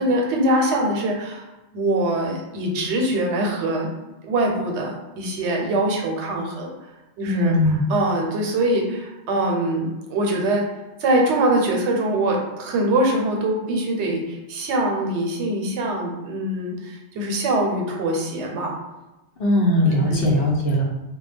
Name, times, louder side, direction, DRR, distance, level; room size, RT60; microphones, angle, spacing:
voice 1, 0.0-1.5 1.7-3.9 4.2-6.7 7.2-10.7 11.0-18.7 19.9-20.3, right 1 dB, 85° right, 1 dB, 0.9 m, -23 dB
voice 2, 7.2-7.8 19.4-20.8, left 1 dB, 60° left, -3 dB, 0.8 m, -19 dB
2.2 x 2.1 x 3.2 m, 1.0 s
omnidirectional pair, 1.1 m